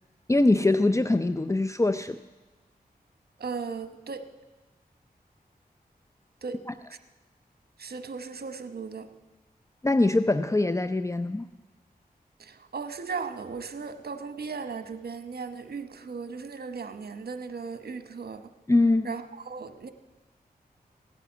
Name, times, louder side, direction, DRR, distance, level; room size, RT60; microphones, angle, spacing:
voice 1, 0.3-2.2 6.7-6.8 9.8-11.5 18.7-19.1, left 2 dB, 20° left, 11 dB, 0.5 m, -23 dB
voice 2, 3.4-4.3 6.4-6.6 7.8-9.1 12.4-18.4 19.0-19.9, right 5 dB, 75° right, 9 dB, 1.0 m, -37 dB
16.5 x 9.2 x 8.3 m, 1.2 s
cardioid pair, 55°, 16 cm